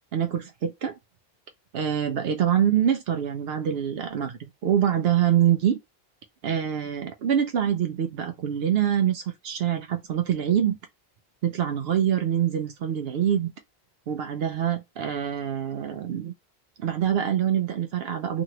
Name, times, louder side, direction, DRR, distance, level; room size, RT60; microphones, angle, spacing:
voice 1, 0.1-0.9 1.7-5.8 6.4-10.8 11.4-13.5 14.1-16.3 16.8-18.4, right 9 dB, 75° right, 0.8 m, -25 dB
2.9 x 2.6 x 2.8 m
omnidirectional pair, 1.1 m